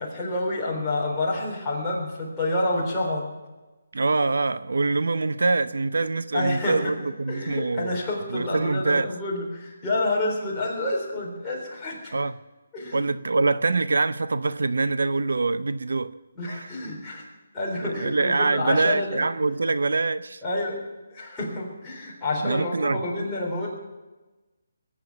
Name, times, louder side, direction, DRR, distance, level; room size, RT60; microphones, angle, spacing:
voice 1, 0.0-3.3 6.3-6.9 7.3-12.2 12.7-13.0 16.3-17.2 17.5-19.2 20.4-20.8 21.1-23.7, left 2 dB, 5° left, 3.7 m, -28 dB
voice 2, 3.9-8.0 8.3-9.1 12.1-12.3 12.9-16.1 16.5-16.7 17.8-20.4 22.4-23.0, right 3 dB, 80° right, 0.6 m, -24 dB
21.0 x 8.9 x 7.2 m
hypercardioid pair, 175°, 0 cm